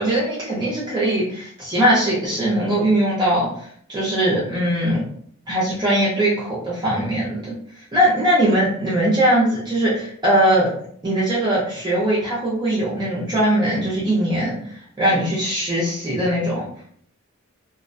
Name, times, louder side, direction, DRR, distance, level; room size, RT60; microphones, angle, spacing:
voice 1, 0.0-5.0 5.5-7.4 7.9-10.7 11.0-14.6 15.0-16.6, right 1 dB, 20° right, -7 dB, 0.5 m, -20 dB
2.3 x 2.1 x 2.6 m, 0.62 s
head